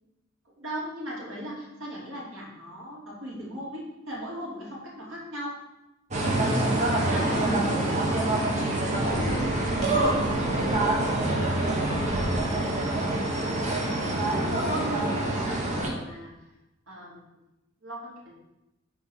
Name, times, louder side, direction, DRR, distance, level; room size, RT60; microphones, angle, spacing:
voice 1, 0.5-5.6 6.9-8.4 14.2-16.5 16.9-17.4 17.8-18.1, equal, 65° right, -5 dB, 2.8 m, -39 dB
sound 1, 6.1-15.9, right 1 dB, 35° right, 1.2 m, -26 dB
voice 2, 7.1-8.1 9.1-12.1 14.5-15.0, equal, 50° left, 1 dB, 1.2 m, -39 dB
6.1 x 4.7 x 6.3 m, 0.95 s
head